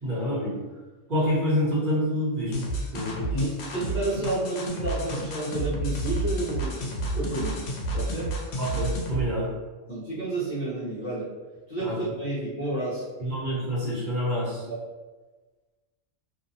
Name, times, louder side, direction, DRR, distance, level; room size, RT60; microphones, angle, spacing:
voice 1, 0.0-0.5 1.1-2.6 2.9-3.3 8.6-9.5 11.8-11.9 13.2-14.6, equal, 45° right, -9 dB, 1.0 m, -27 dB
sound 1, 2.5-9.2, right 1 dB, 75° left, 0.9 m, -31 dB
voice 2, 3.3-8.4 9.9-11.3 11.7-13.0 14.6-14.8, right 2 dB, 45° left, -10 dB, 0.7 m, -31 dB
2.6 x 2.0 x 2.6 m, 1.3 s
omnidirectional pair, 1.3 m